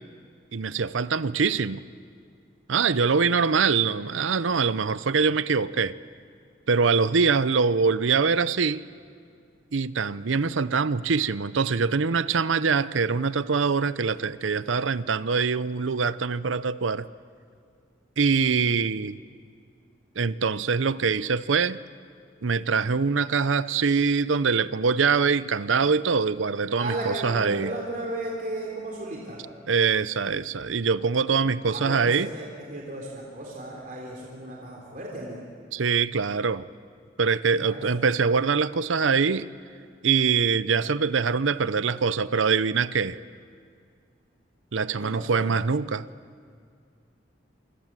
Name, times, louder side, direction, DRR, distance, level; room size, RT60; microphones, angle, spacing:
voice 1, 0.5-1.8 2.7-6.0 6.7-8.8 9.7-17.1 18.2-19.2 20.2-21.8 22.4-27.7 29.7-32.3 35.7-36.6 37.2-39.5 40.0-43.2 44.7-46.1, right 5 dB, 90° right, 16 dB, 0.7 m, -24 dB
voice 2, 26.8-29.4 31.0-31.4 31.7-35.4 37.6-37.9 45.0-45.4, right 1 dB, 45° right, -2 dB, 3.6 m, -35 dB
27.5 x 24.5 x 7.6 m, 2.2 s
head